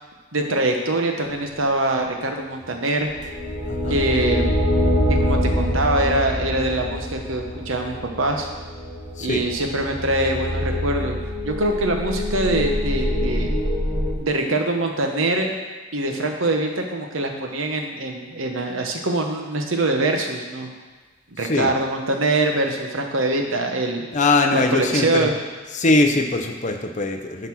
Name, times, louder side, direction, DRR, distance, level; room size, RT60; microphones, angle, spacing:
voice 1, 0.3-3.1 3.9-4.5 5.1-8.5 9.2-13.5 14.2-15.5 15.9-20.7 21.3-24.0 24.5-25.3, right 2 dB, 70° right, 3 dB, 1.1 m, -23 dB
sound 1, 3.1-14.1, left 1 dB, 5° right, 1.7 m, -25 dB
voice 2, 3.6-4.0 9.2-9.5 21.4-21.7 24.1-25.3 25.7-27.5, left 2 dB, 35° left, 4 dB, 0.7 m, -21 dB
10.5 x 4.2 x 6.2 m, 1.4 s
head